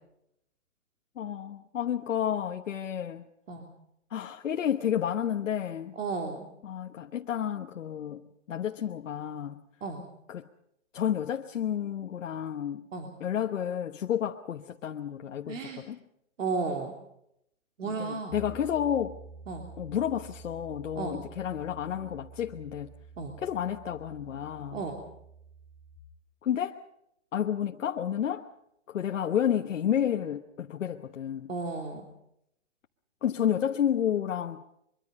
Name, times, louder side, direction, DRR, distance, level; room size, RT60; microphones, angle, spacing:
voice 1, 1.2-3.3 4.1-6.0 6.6-9.6 10.3-10.4 10.9-12.8 13.2-16.0 17.8-19.2 19.8-22.9 23.4-24.8 26.4-26.8 27.3-28.4 28.9-31.5 33.2-34.6, left 9 dB, 85° left, 1.2 m, -31 dB
voice 2, 5.9-6.5 9.8-10.0 12.9-13.1 15.5-15.8 16.4-16.9 17.8-18.4 19.5-19.7 20.9-21.2 23.2-23.4 24.7-25.0 31.5-32.0, right 4 dB, 90° right, 3.2 m, -33 dB
Piano, 18.3-26.0, right 4 dB, 5° right, 6.2 m, -49 dB
23.5 x 23.5 x 5.4 m
hypercardioid pair, 180°, 37 cm